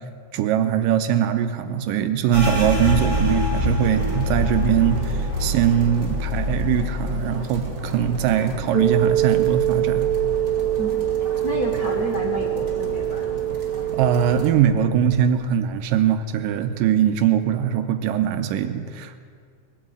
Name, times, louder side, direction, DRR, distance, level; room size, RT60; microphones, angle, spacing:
voice 1, 0.3-10.1 13.9-19.2, right 9 dB, 80° right, 9 dB, 2.3 m, -21 dB
sound 1, 2.3-11.7 12.0-13.2 13.6-14.0 14.5-15.1, left 1 dB, 10° right, 4.4 m, -27 dB
sound 2, 3.8-14.5, right 3 dB, 35° right, 1.1 m, -36 dB
sound 3, 8.7-14.5, right 12 dB, 65° left, 1.2 m, -24 dB
voice 2, 11.4-13.3, left 1 dB, 85° left, -1 dB, 0.8 m, -29 dB
20.0 x 8.8 x 7.7 m, 2.1 s
omnidirectional pair, 4.0 m